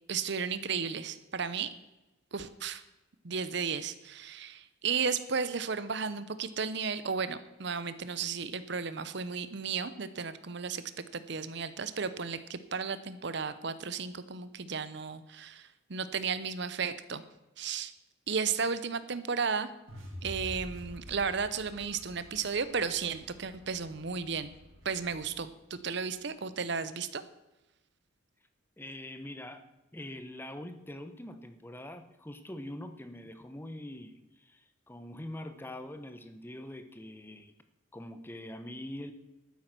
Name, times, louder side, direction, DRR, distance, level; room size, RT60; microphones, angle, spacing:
voice 1, 0.1-1.7 2.3-2.8 3.2-10.8 11.1-17.2 17.6-17.9 18.3-19.7 20.2-24.5 24.8-27.2, right 5 dB, 60° right, 13 dB, 0.8 m, -34 dB
sound 1, 19.9-26.0, equal, 90° right, 4.6 m, -48 dB
voice 2, 28.8-29.6 29.9-37.5 37.9-39.1, left 1 dB, 10° left, 9 dB, 0.8 m, -44 dB
12.5 x 9.4 x 6.1 m, 0.99 s
head